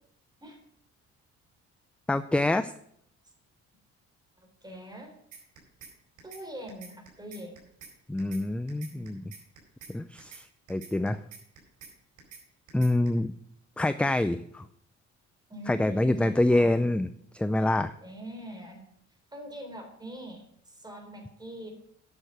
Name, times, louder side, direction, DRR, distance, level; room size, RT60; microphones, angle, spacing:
voice 1, 2.1-2.7 8.1-9.3 9.9-11.2 12.7-13.3 13.8-14.7 15.7-17.9, left 1 dB, 5° left, 12 dB, 0.3 m, -26 dB
voice 2, 4.4-5.2 6.2-7.6 8.9-9.1 15.5-16.9 18.0-18.8 19.3-21.7, equal, 15° right, 4 dB, 3.5 m, -43 dB
sound 1, 5.3-5.9 6.2-6.4 6.7-7.9 8.2-8.4 8.7-9.9 10.2-10.4 10.7-11.9 12.2-12.4 12.7-13.1, right 6 dB, 75° right, 4.4 m, -47 dB
10.0 x 6.3 x 6.8 m, 0.69 s
cardioid pair, 90°, 30 cm